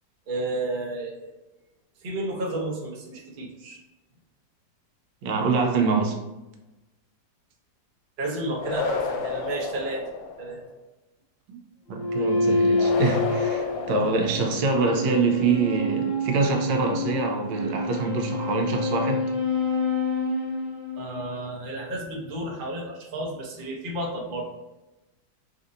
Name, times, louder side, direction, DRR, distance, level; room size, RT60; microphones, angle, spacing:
voice 1, 0.3-1.3 2.0-3.8 8.2-10.0 10.4-10.6 21.0-24.4, right 1 dB, 60° right, -2 dB, 0.5 m, -32 dB
voice 2, 5.2-6.2 11.5-11.6 11.9-19.3, right 4 dB, 80° right, 3 dB, 1.3 m, -25 dB
sound 1, 8.6-10.6 12.7-14.8, left 4 dB, 85° left, 1.3 m, -31 dB
sound 2, 11.9-21.5, left 2 dB, 40° left, 0.8 m, -27 dB
4.0 x 2.6 x 2.5 m, 1.0 s
omnidirectional pair, 2.0 m